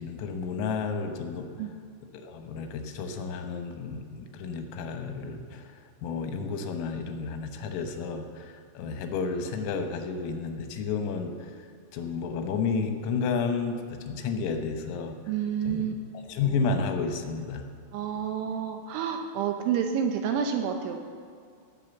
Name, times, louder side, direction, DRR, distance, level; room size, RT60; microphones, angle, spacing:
voice 1, 0.0-1.5 2.1-5.6 6.0-11.3 11.9-15.2 15.7-15.9 16.2-17.7, left 5 dB, 85° left, 5 dB, 3.8 m, -31 dB
voice 2, 15.3-15.9 17.9-21.0, right 8 dB, 80° right, 5 dB, 2.9 m, -29 dB
17.5 x 6.3 x 7.1 m, 2.3 s
omnidirectional pair, 5.9 m